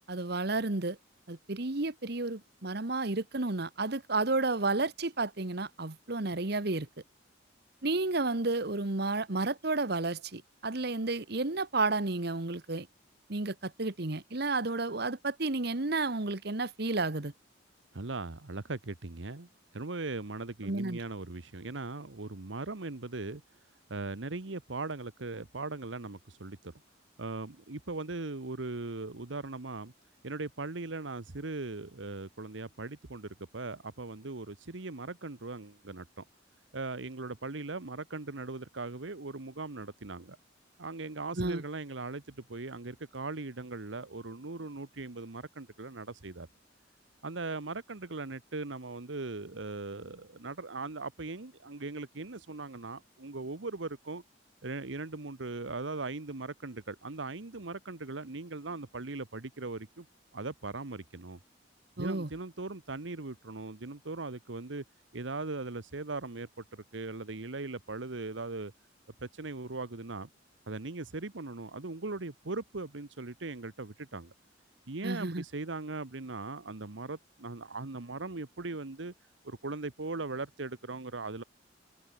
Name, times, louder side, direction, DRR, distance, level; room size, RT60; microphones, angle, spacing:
voice 1, 0.1-1.0 1.3-6.9 7.8-12.9 13.3-17.3 20.6-21.0 41.4-41.6 62.0-62.3 75.0-75.4, right 3 dB, 60° right, 1.5 m, -31 dB
voice 2, 17.9-23.4 23.9-26.7 27.2-29.9 30.2-36.2 36.7-40.4 40.8-46.5 47.2-54.2 54.6-60.1 60.3-61.4 62.0-64.8 65.1-68.7 69.2-70.3 70.7-74.3 74.9-79.1 79.4-81.4, right 3 dB, 80° right, 1.3 m, -39 dB
head